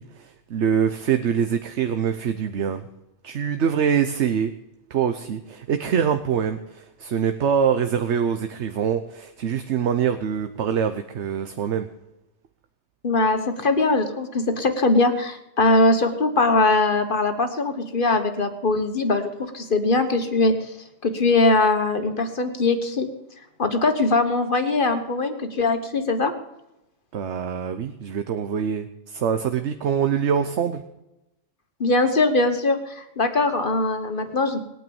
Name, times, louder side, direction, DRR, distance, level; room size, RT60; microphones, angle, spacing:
voice 1, 0.0-2.8 3.2-4.5 4.9-11.9 27.1-30.8, right 7 dB, 70° right, 9 dB, 1.1 m, -24 dB
voice 2, 13.0-20.7 21.0-23.1 23.6-26.3 31.8-34.6, left 2 dB, 45° left, 8 dB, 1.4 m, -21 dB
20.0 x 9.3 x 7.1 m, 0.92 s
omnidirectional pair, 1.2 m